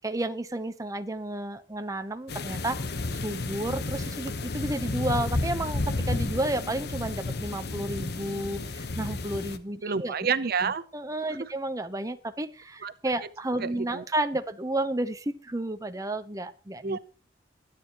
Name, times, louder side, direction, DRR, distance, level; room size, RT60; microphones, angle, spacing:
voice 1, 0.0-2.8 3.2-10.1 10.6-17.0, right 1 dB, 20° right, 9 dB, 0.8 m, -32 dB
sound 1, 2.3-9.6, left 2 dB, 60° left, 1.1 m, -32 dB
voice 2, 9.8-10.8 11.3-11.5 12.8-12.9 13.6-14.0 16.8-17.0, right 5 dB, 55° right, 14 dB, 0.7 m, -29 dB
23.0 x 9.5 x 3.0 m, 0.35 s
head